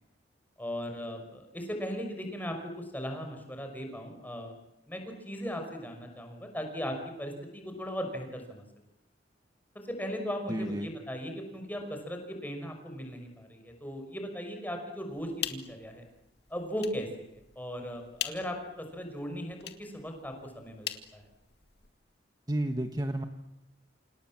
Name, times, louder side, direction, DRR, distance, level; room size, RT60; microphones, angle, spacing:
voice 1, 0.6-4.5 4.9-5.0 5.3-8.6 9.8-16.0 16.5-20.9 21.1-21.2, equal, 10° left, 4 dB, 5.6 m, -38 dB
voice 2, 10.5-10.9 22.5-23.2, right 1 dB, 20° right, 6 dB, 1.4 m, -31 dB
sound 1, 15.1-21.9, left 10 dB, 65° left, 2.2 m, -43 dB
29.0 x 27.5 x 7.6 m, 0.86 s
head